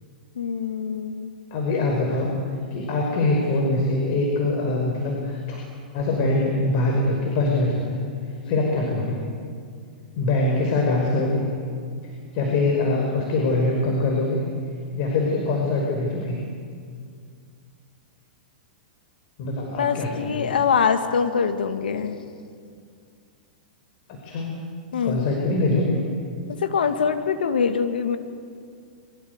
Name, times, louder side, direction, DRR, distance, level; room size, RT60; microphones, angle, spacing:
voice 1, 0.4-1.3 19.8-22.2 24.9-25.3 26.5-28.2, left 6 dB, 80° left, 8 dB, 2.2 m, -24 dB
voice 2, 1.5-2.3 2.7-5.6 5.9-8.0 8.5-9.2 10.1-11.5 12.3-14.4 15.0-16.4 19.4-20.4 24.2-24.5 25.0-26.0, left 2 dB, 50° left, 0 dB, 5.5 m, -23 dB
27.5 x 24.0 x 8.2 m, 2.2 s
hypercardioid pair, 125°, 5 cm